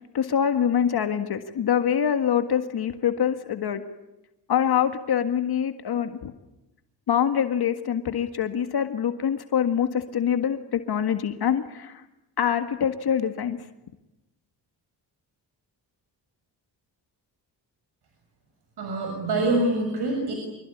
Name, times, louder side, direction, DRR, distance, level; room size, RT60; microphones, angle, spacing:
voice 1, 0.1-3.8 4.5-6.3 7.1-12.0 12.4-13.6, left 8 dB, 60° left, 8 dB, 1.8 m, -25 dB
voice 2, 18.8-20.3, right 2 dB, 65° right, 3 dB, 6.7 m, -25 dB
26.0 x 22.5 x 9.9 m, 0.96 s
cardioid pair, 95°, 42 cm